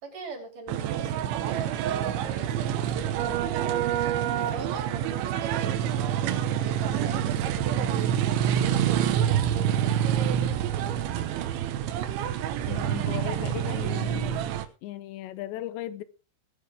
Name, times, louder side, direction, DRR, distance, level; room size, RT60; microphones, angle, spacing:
voice 1, 0.0-3.2 4.4-10.1, right 3 dB, 50° right, 4.7 m, -43 dB
sound 1, 0.7-14.7, right 10 dB, 90° right, 3.5 m, -27 dB
voice 2, 12.7-14.5 14.8-16.0, left 14 dB, 80° left, 3.1 m, -37 dB
19.0 x 9.8 x 3.5 m
omnidirectional pair, 5.1 m